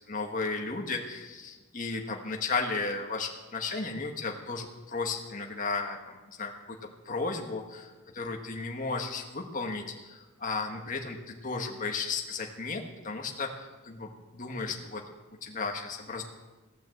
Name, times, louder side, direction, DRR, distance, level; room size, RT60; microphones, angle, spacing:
voice 1, 0.1-6.8 7.0-15.1 15.4-16.2, left 4 dB, 40° left, 2 dB, 1.6 m, -34 dB
17.0 x 9.6 x 7.9 m, 1.3 s
head